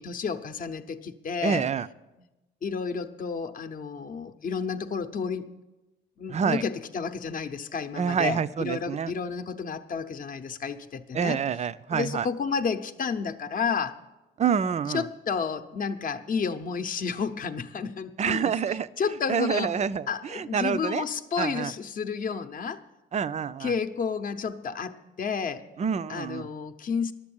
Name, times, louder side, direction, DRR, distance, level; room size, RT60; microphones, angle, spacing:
voice 1, 0.0-1.6 2.6-5.5 6.2-11.4 11.9-14.0 14.9-18.5 19.0-19.8 20.1-22.8 23.6-25.6 26.1-27.1, left 5 dB, 45° left, 9 dB, 0.7 m, -31 dB
voice 2, 1.4-1.9 6.3-6.6 8.0-9.1 11.1-12.3 14.4-15.1 18.2-18.9 19.3-21.0 21.4-21.7 23.1-23.7 25.8-26.5, right 7 dB, 35° right, 15 dB, 0.4 m, -27 dB
11.5 x 7.4 x 8.6 m, 1.0 s
cardioid pair, 90°, 20 cm